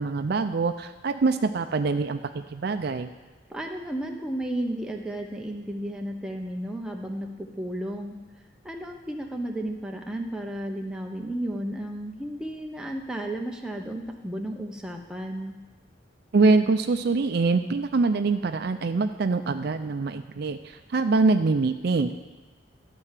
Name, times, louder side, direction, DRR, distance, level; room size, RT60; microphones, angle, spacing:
voice 1, 0.0-3.1 16.3-22.2, right 3 dB, 55° right, 8 dB, 0.4 m, -24 dB
voice 2, 3.5-8.2 8.6-15.5, right 1 dB, 5° right, 1 dB, 0.8 m, -33 dB
12.0 x 4.4 x 7.4 m, 1.3 s
head